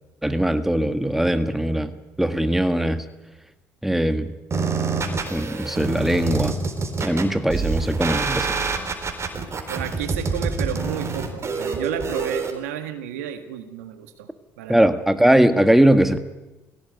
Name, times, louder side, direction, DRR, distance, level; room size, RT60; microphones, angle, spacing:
voice 1, 0.2-1.9 2.2-3.0 3.8-4.3 5.3-6.6 7.0-8.5 14.7-16.2, right 1 dB, 5° right, 10 dB, 1.7 m, -20 dB
sound 1, 4.5-12.5, right 4 dB, 40° right, 4.0 m, -26 dB
voice 2, 9.7-14.3 14.6-14.8, right 10 dB, 90° right, 9 dB, 1.7 m, -32 dB
19.5 x 16.5 x 9.2 m, 1.0 s
hypercardioid pair, 65°, 8 cm